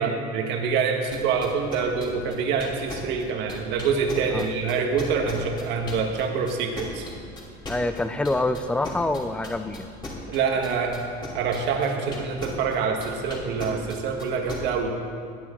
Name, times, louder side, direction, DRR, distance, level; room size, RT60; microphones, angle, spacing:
voice 1, 0.0-7.1 10.3-11.0 11.3-14.9, right 5 dB, 65° right, 2 dB, 1.7 m, -26 dB
sound 1, 1.1-6.2 6.5-12.7 13.0-14.6, left 2 dB, 25° left, 2.7 m, -37 dB
voice 2, 7.7-9.9, left 2 dB, 5° left, 10 dB, 0.5 m, -26 dB
18.0 x 9.1 x 3.9 m, 2.3 s
cardioid pair, 130°, 19 cm